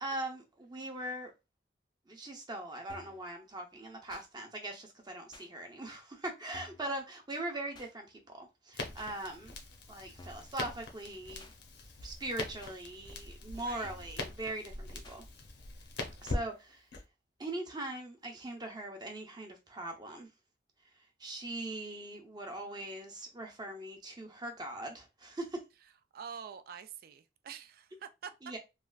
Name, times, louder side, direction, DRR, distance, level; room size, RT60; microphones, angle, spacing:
voice 1, 0.0-1.3 2.1-9.5 9.9-11.5 12.0-15.2 16.2-16.9 17.4-20.3 21.2-25.6 28.4-28.6, right 1 dB, 25° right, 0.7 m, -41 dB
sound 1, 2.9-3.2 4.1-4.3 5.3-5.5 6.5-6.9 7.7-7.9 9.0-9.1 10.2-10.5 11.4-11.6 12.6-12.8 13.8-14.2 15.0-15.2 16.2-16.4, left 2 dB, 25° left, 0.4 m, -53 dB
Crackle, 8.7-17.0, left 2 dB, 65° left, 0.7 m, -42 dB
voice 2, 13.5-13.9 26.1-28.3, right 7 dB, 55° right, 0.3 m, -46 dB
3.2 x 2.3 x 2.3 m
head